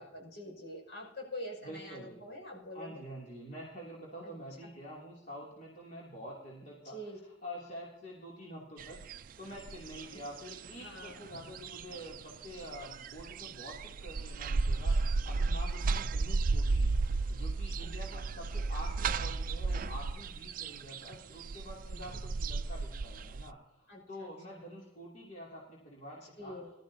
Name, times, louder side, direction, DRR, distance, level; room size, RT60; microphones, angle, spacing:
voice 1, 0.0-3.0 4.2-4.3 4.6-4.7 6.8-7.2 10.8-11.2 17.8-17.9 21.9-22.0 23.9-24.3 26.4-26.7, left 1 dB, 60° left, -1 dB, 5.8 m, -45 dB
voice 2, 1.6-2.2 2.7-26.6, equal, 45° left, -5 dB, 2.9 m, -47 dB
sound 1, 8.8-9.2 9.5-23.5, right 3 dB, 45° right, 0.4 m, -34 dB
20.5 x 12.5 x 2.8 m, 0.85 s
head